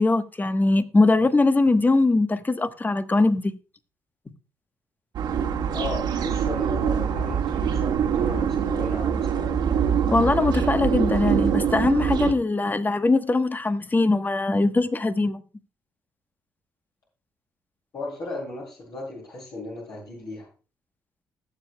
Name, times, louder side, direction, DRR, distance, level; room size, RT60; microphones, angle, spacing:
voice 1, 0.0-3.5 10.1-15.4, left 2 dB, 25° left, 1.1 m, -21 dB
sound 1, 5.1-12.3, right 8 dB, 70° right, 1.7 m, -24 dB
voice 2, 5.7-9.6 17.9-20.5, left 2 dB, 60° left, 6.4 m, -35 dB
20.5 x 7.2 x 2.3 m
hypercardioid pair, 55°, 8 cm